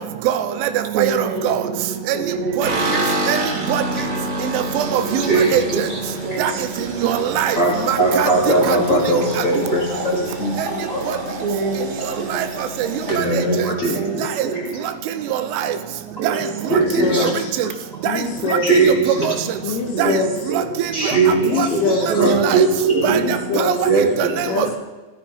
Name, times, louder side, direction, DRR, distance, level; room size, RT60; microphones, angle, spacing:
voice 1, 0.3-0.7 1.0-1.2 1.4-1.6 2.6-2.7 3.3-3.4 3.7-3.8 4.5-5.2 5.5-5.9 6.4-6.5 7.0-7.6 7.9-8.3 8.7-8.8 12.4-12.5 13.2-13.3 15.7-15.8 17.2-17.3 17.6-17.7 18.0-18.1 18.9-19.0 19.3-19.4 20.0-20.1 21.6-21.7 22.3-22.6 23.0-23.2 23.6-23.7 24.2-24.3 24.6-24.7, right 11 dB, 85° right, 10 dB, 3.5 m, -21 dB
voice 2, 0.9-3.2 5.0-5.7 6.2-7.1 8.0-8.3 8.6-8.8 9.5-9.8 10.1-10.4 11.4-11.8 12.2-12.4 13.9-14.2 14.4-14.7 16.2-16.4 16.7-17.0 19.9-20.2 20.5-20.7 22.1-22.5 22.9-23.4, right 4 dB, 70° right, 4 dB, 3.5 m, -26 dB
sound 1, 2.6-14.9 15.2-15.8 16.1-16.2 16.5-17.2, right 1 dB, 35° right, 1.6 m, -29 dB
voice 3, 5.3-5.6 5.9-6.0 7.6-11.3 13.1-14.2 14.5-14.6 16.7-17.3 18.6-19.3 20.9-23.2 23.8-24.4, right 2 dB, 20° left, -3 dB, 2.4 m, -19 dB
voice 4, 16.9-17.5 18.1-18.7 19.6-20.3 21.4-22.1 23.1-23.8 24.5-24.8, left 4 dB, 85° left, 2 dB, 4.8 m, -23 dB
15.5 x 14.0 x 4.9 m, 1.2 s
omnidirectional pair, 5.5 m